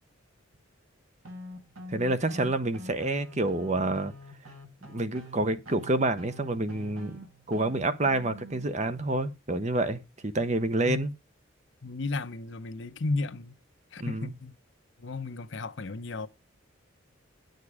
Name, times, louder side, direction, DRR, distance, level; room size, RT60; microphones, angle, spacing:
sound 1, 1.2-8.7, equal, 75° right, 2.0 m, -45 dB
voice 1, 1.9-4.1 4.9-7.2 7.5-11.1 14.0-14.3, right 2 dB, 35° right, 0.8 m, -28 dB
voice 2, 11.8-13.5 13.9-14.5 15.0-16.3, left 3 dB, 60° left, 0.7 m, -34 dB
9.8 x 6.6 x 4.9 m
head